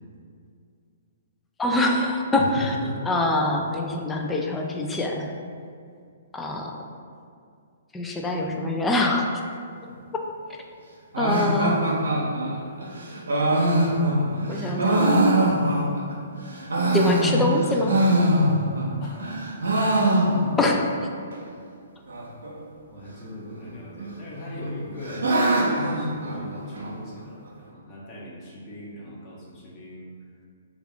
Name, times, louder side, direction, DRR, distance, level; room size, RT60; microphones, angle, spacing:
voice 1, 1.6-2.7 3.1-5.3 6.3-6.7 7.9-9.4 11.2-11.8 14.5-15.4 16.9-18.0 20.6-20.8, left 2 dB, 10° left, 1 dB, 0.3 m, -24 dB
voice 2, 2.4-3.3 19.0-19.9 20.5-21.0 22.9-30.1, equal, 30° left, -7 dB, 1.0 m, -39 dB
sound 1, 11.1-16.1 16.5-18.9 19.2-20.8 21.0-21.1 21.3-21.4 22.1-22.5 23.5-24.1 24.5-26.9, right 1 dB, 90° right, 0.7 m, -23 dB
3.4 x 2.3 x 3.5 m, 2.3 s
hypercardioid pair, 145°, 0 cm